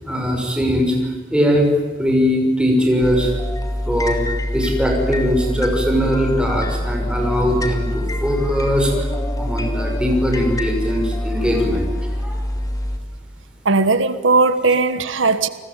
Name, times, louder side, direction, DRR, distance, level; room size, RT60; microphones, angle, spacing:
voice 1, 0.0-1.7 2.0-3.3 3.8-4.2 4.5-9.1 9.4-12.4, equal, 5° right, 6.2 m, -20 dB
sound 1, 3.0-13.0, left 1 dB, 20° left, 2.8 m, -24 dB
voice 2, 13.6-15.5, right 3 dB, 90° right, 1.3 m, -17 dB
29.5 x 20.5 x 9.1 m
head